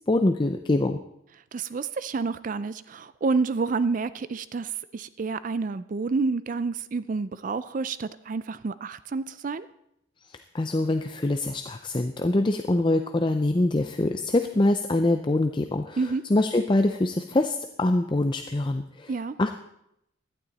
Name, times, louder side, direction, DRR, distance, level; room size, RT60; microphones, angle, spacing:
voice 1, 0.1-1.0 10.3-19.1 19.4-19.5, left 2 dB, 25° left, 7 dB, 0.5 m, -24 dB
voice 2, 1.5-9.7 16.0-16.2 19.1-19.3, right 4 dB, 40° right, 15 dB, 0.4 m, -29 dB
16.0 x 11.5 x 4.1 m, 0.79 s
head